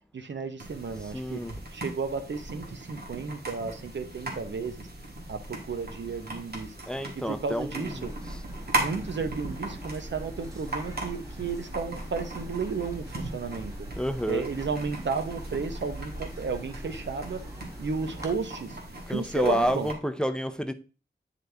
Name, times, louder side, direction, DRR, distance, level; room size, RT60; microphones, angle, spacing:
voice 1, 0.1-1.4 1.7-4.9 5.3-6.8 7.1-8.1 8.7-13.9 14.3-18.8 19.1-19.9, right 5 dB, 90° right, 0.9 m, -33 dB
sound 1, 0.6-19.9, right 2 dB, 60° right, 1.8 m, -38 dB
voice 2, 1.1-1.6 6.9-8.4 14.0-14.4 19.1-20.7, equal, 5° left, 0.5 m, -29 dB
sound 2, 7.8-18.3, equal, 15° right, 1.3 m, -42 dB
9.2 x 4.0 x 3.4 m
wide cardioid pair, 95°, 18 cm